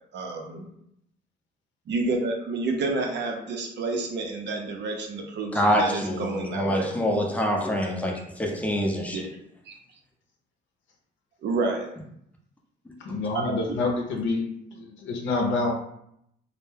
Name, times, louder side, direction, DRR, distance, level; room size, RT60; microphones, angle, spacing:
voice 1, 0.1-0.7 1.9-6.9 9.1-9.2 9.7-9.8 11.4-11.9 13.3-13.5, right 3 dB, 65° right, 2 dB, 0.6 m, -29 dB
voice 2, 5.5-9.3, equal, 5° left, 0 dB, 0.5 m, -26 dB
voice 3, 13.0-14.4 14.7-15.7, left 3 dB, 70° left, 1 dB, 0.6 m, -27 dB
2.1 x 2.0 x 3.2 m, 0.75 s
cardioid pair, 90°, 20 cm